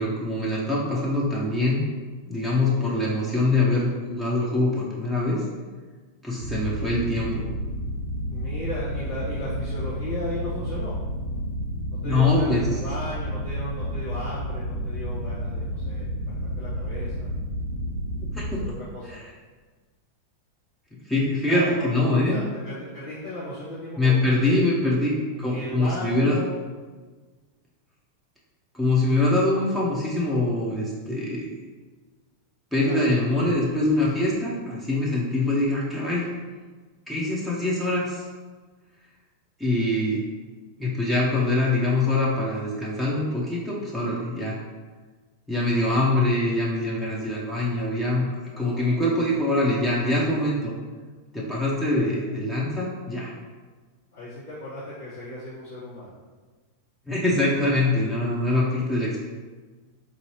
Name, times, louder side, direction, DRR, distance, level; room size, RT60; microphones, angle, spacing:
voice 1, 0.0-1.9 2.3-5.4 6.2-7.4 12.0-12.7 18.3-18.6 19.0-19.3 21.1-22.4 24.0-26.4 28.7-31.5 32.7-36.3 37.1-38.2 39.6-40.2 40.8-44.6 45.5-48.3 48.6-50.7 51.3-53.3 57.1-59.2, left 2 dB, 5° left, -7 dB, 0.7 m, -24 dB
sound 1, 6.4-18.7, equal, 60° right, 0.5 m, -31 dB
voice 2, 8.3-11.0 12.0-17.3 18.6-19.3 21.4-24.5 25.2-26.6 32.8-33.0 48.5-49.0 51.5-52.2 54.1-56.1, left 1 dB, 80° left, -14 dB, 1.3 m, -36 dB
4.5 x 2.7 x 3.0 m, 1.4 s
figure-of-eight pair, 90°, 0 cm